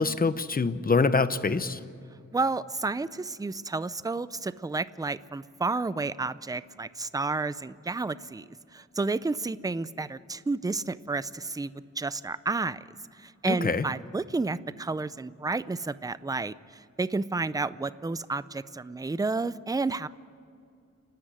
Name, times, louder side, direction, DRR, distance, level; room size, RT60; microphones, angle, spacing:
voice 1, 0.0-1.8 13.5-13.9, left 4 dB, 30° left, 12 dB, 0.8 m, -25 dB
voice 2, 2.3-8.4 8.7-11.7 12.0-12.8 13.2-16.5 17.0-20.1, right 3 dB, 15° right, 16 dB, 0.4 m, -31 dB
29.0 x 12.5 x 10.0 m, 2.4 s
wide cardioid pair, 155°, 29 cm